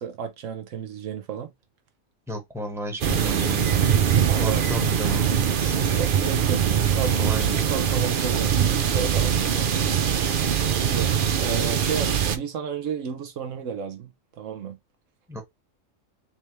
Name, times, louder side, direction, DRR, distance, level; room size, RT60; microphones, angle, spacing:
voice 1, 0.0-1.5 4.3-4.6 5.9-6.6 6.9-9.9 10.8-11.1 11.4-14.8, right 7 dB, 75° right, 1.1 m, -32 dB
voice 2, 2.3-3.7 4.3-5.3 5.6-5.9 6.7-7.6 15.3-15.4, equal, ahead, 1.1 m, -34 dB
sound 1, 3.0-12.4, right 8 dB, 55° right, 0.6 m, -22 dB
3.5 x 3.3 x 3.1 m
omnidirectional pair, 1.4 m